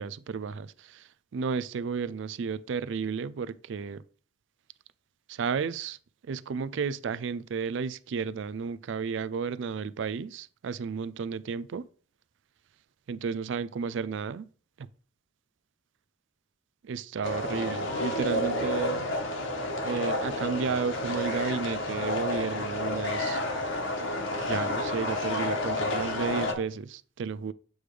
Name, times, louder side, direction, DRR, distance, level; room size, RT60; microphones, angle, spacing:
voice 1, 0.0-4.0 5.3-6.0 6.3-11.9 13.1-14.5 14.8-14.9 16.8-19.0 19.8-23.4 24.5-27.5, right 5 dB, 65° right, 0.4 m, -33 dB
sound 1, 17.2-26.5, left 1 dB, 70° left, 1.3 m, -30 dB
7.8 x 3.3 x 4.8 m
head